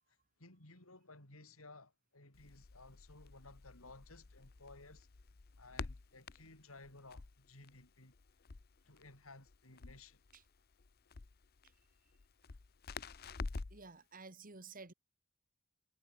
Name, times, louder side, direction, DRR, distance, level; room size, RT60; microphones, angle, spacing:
voice 1, 0.4-5.1 5.6-8.1 8.8-10.2 12.5-12.6, left 2 dB, 85° left, 5.4 m, -57 dB
Crackle, 2.3-13.9, left 4 dB, 45° left, 0.7 m, -49 dB
voice 2, 13.7-14.9, right 4 dB, 40° right, 2.1 m, -52 dB
head